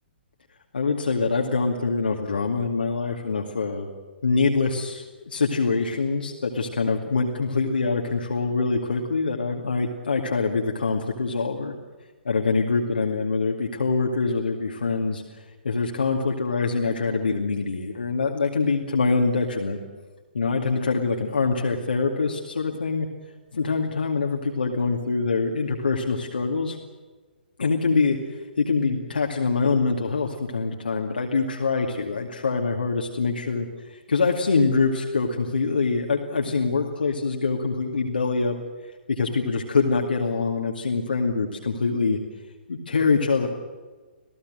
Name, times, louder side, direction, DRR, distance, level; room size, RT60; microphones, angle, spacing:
voice 1, 0.7-3.9 4.2-11.7 12.2-15.2 15.6-19.8 20.3-23.1 23.5-26.8 27.6-38.6 38.8-42.2 42.7-43.5, left 4 dB, 65° left, 1 dB, 2.4 m, -24 dB
27.5 x 17.5 x 7.8 m, 1.4 s
figure-of-eight pair, 125°, 6 cm